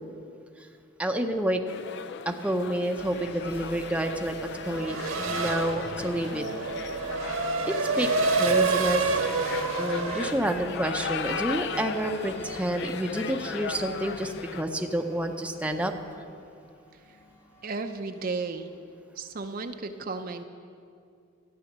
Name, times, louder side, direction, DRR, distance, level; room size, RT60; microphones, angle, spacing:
voice 1, 1.0-1.6 2.3-4.4 4.6-6.4 8.0-8.1 8.4-9.1 9.8-15.9, right 1 dB, 5° right, 4 dB, 0.7 m, -29 dB
sound 1, 1.7-14.6, left 6 dB, 55° left, 0.5 m, -38 dB
sound 2, 3.0-18.8, equal, 30° left, 1.7 m, -46 dB
Race car auto racing / Accelerating revving vroom, 4.6-10.3, right 4 dB, 90° right, 1.6 m, -27 dB
voice 2, 17.6-18.7 19.2-20.4, right 3 dB, 45° right, 7 dB, 0.6 m, -34 dB
13.5 x 9.6 x 7.3 m, 2.4 s
head